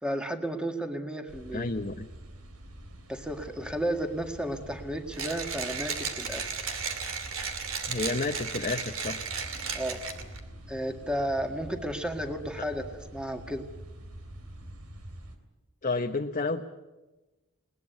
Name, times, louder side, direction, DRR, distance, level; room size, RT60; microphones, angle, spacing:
voice 1, 0.0-1.7 3.1-6.6 9.7-10.0 10.7-13.7, right 1 dB, 5° right, 5 dB, 1.9 m, -33 dB
sound 1, 1.3-15.4, right 1 dB, 85° right, 3.0 m, -46 dB
voice 2, 1.5-2.1 7.9-9.2 15.8-16.6, left 3 dB, 35° left, 4 dB, 0.9 m, -30 dB
Mechanisms, 5.1-10.4, right 6 dB, 65° right, 2.6 m, -34 dB
20.5 x 19.5 x 8.3 m, 1.1 s
head